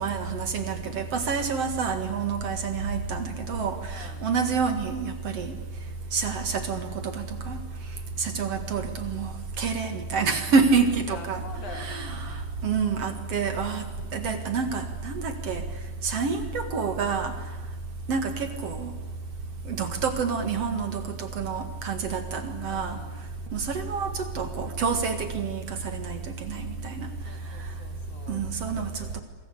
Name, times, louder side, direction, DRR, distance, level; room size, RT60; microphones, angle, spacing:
voice 1, 0.0-5.5 6.1-7.6 8.2-11.4 11.7-12.4 12.6-13.9 14.1-15.6 16.0-17.3 18.1-18.9 19.7-23.0 23.5-27.1 28.3-29.2, right 5 dB, 50° right, 8 dB, 2.6 m, -28 dB
voice 2, 3.9-4.3 11.1-12.5 22.7-23.2 27.2-29.2, left 5 dB, 65° left, 5 dB, 4.3 m, -45 dB
28.0 x 23.0 x 8.4 m, 1.2 s
omnidirectional pair, 3.8 m